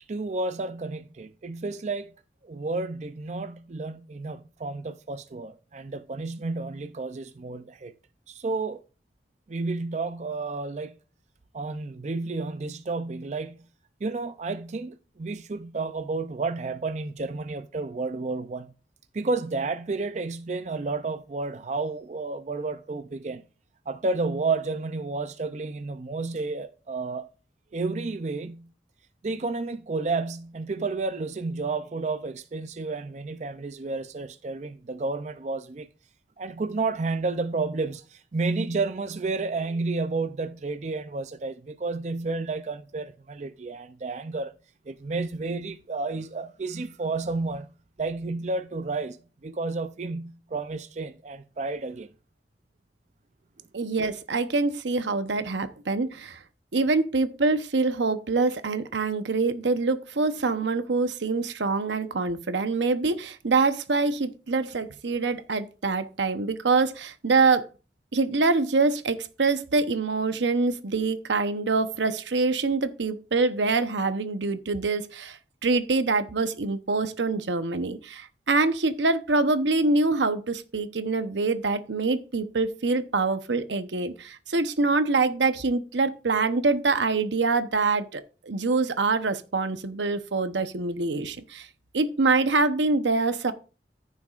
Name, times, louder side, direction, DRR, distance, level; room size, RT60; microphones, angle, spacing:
voice 1, 0.1-2.1 2.4-7.9 8.3-8.8 9.5-11.0 11.5-13.6 14.0-18.7 19.1-23.4 23.9-27.3 27.7-28.7 29.2-35.9 36.4-44.5 44.9-47.7 48.0-52.1, right 3 dB, 40° right, 0.4 m, -31 dB
voice 2, 53.7-56.4 56.7-67.7 68.1-91.7 91.9-93.5, right 3 dB, 90° right, 0.8 m, -25 dB
14.5 x 6.9 x 2.4 m
head